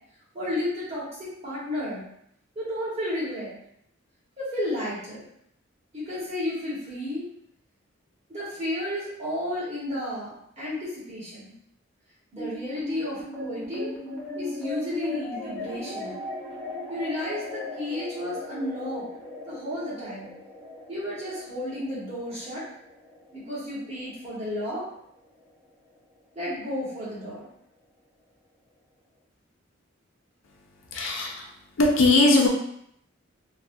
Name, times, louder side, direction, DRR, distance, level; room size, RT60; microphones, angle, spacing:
voice 1, 0.3-2.0 2.5-3.6 4.4-5.3 5.9-7.3 8.3-11.5 12.3-14.0 14.4-16.2 16.9-19.1 19.4-20.3 20.9-22.7 23.3-24.8 26.3-27.5, left 1 dB, 30° right, -9 dB, 1.3 m, -32 dB
sound 1, 12.4-25.0, left 1 dB, 5° left, 0.7 m, -38 dB
voice 2, 30.9-31.5 31.8-32.5, left 2 dB, 75° left, 0 dB, 0.6 m, -19 dB
3.2 x 2.2 x 2.6 m, 0.72 s
head